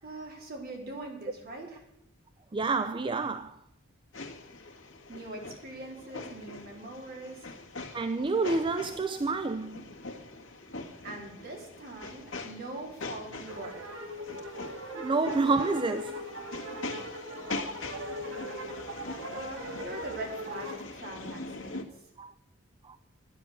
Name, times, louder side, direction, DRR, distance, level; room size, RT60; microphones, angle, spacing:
voice 1, 0.0-1.9 4.7-7.6 11.0-13.9 19.3-22.1, right 2 dB, 50° right, 3.5 m, -42 dB
voice 2, 2.5-3.6 7.9-9.9 15.0-16.2 22.2-22.3 22.8-23.0, right 3 dB, 25° right, 0.4 m, -29 dB
sound 1, 4.1-21.8, left 2 dB, 70° left, 1.7 m, -42 dB
sound 2, 13.4-20.8, equal, 70° right, 2.4 m, -40 dB
11.5 x 10.0 x 6.9 m
head